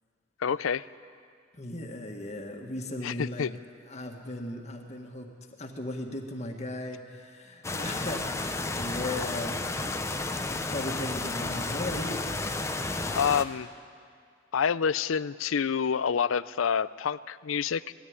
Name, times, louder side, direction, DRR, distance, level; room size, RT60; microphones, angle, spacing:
voice 1, 0.4-0.8 3.0-3.6 13.1-13.7 14.5-17.9, left 7 dB, 90° left, 17 dB, 0.5 m, -27 dB
voice 2, 1.5-3.5 3.9-5.3 5.6-9.8 10.4-12.2, left 1 dB, 35° left, 2 dB, 1.7 m, -37 dB
sound 1, 7.6-13.4, left 2 dB, 15° left, 0.7 m, -32 dB
19.5 x 14.0 x 9.6 m, 2.1 s
head